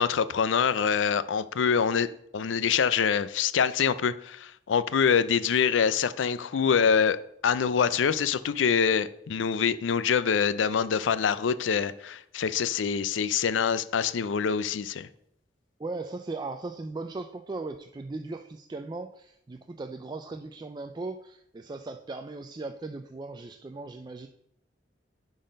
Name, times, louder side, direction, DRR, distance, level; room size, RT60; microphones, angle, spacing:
voice 1, 0.0-2.1 2.3-7.2 7.4-15.1, left 6 dB, 80° left, 0.4 m, -25 dB
voice 2, 15.8-24.3, right 3 dB, 25° right, 0.3 m, -38 dB
10.5 x 4.0 x 5.2 m
head